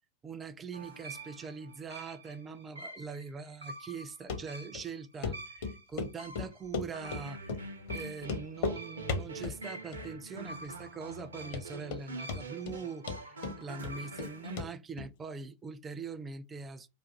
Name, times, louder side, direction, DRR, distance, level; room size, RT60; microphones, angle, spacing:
voice 1, 0.2-16.9, right 5 dB, 20° right, 0.4 m, -43 dB
sound 1, 0.7-14.6, right 2 dB, 75° right, 0.6 m, -45 dB
Run, 4.3-4.4 4.7-4.8 5.2-5.3 5.6-7.2 7.5-7.6 7.9-8.0 8.2-8.8 9.1-9.6 9.9-10.4 10.6-10.7 11.2-11.3 11.5-12.0 12.3-12.8 13.1-14.3 14.6-14.7 15.0-15.1, left 4 dB, 50° left, 0.6 m, -35 dB
2.5 x 2.4 x 3.8 m
figure-of-eight pair, 90°, 0 cm